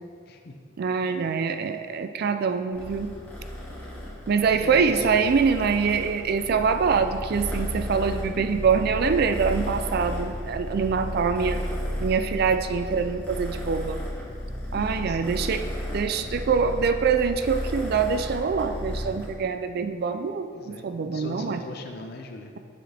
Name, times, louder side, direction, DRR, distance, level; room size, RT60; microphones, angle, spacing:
voice 1, 0.8-3.1 4.3-11.6 12.0-14.0 14.7-15.6 15.9-21.6, right 5 dB, 50° right, 9 dB, 0.3 m, -24 dB
Purr, 2.7-19.3, left 1 dB, 10° left, 1.5 m, -33 dB
voice 2, 4.4-5.3 5.8-6.0 14.7-15.3 20.5-22.5, left 2 dB, 55° left, 4 dB, 0.6 m, -39 dB
7.5 x 6.2 x 3.4 m, 2.2 s
head